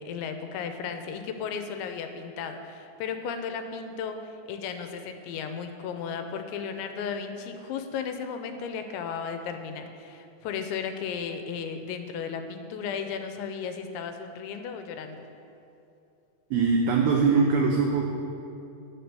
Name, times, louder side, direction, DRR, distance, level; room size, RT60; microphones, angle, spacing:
voice 1, 0.0-15.2, left 6 dB, 85° left, 7 dB, 3.0 m, -35 dB
voice 2, 16.5-18.0, right 4 dB, 85° right, 1 dB, 2.1 m, -22 dB
9.6 x 7.8 x 6.7 m, 2.8 s
omnidirectional pair, 5.3 m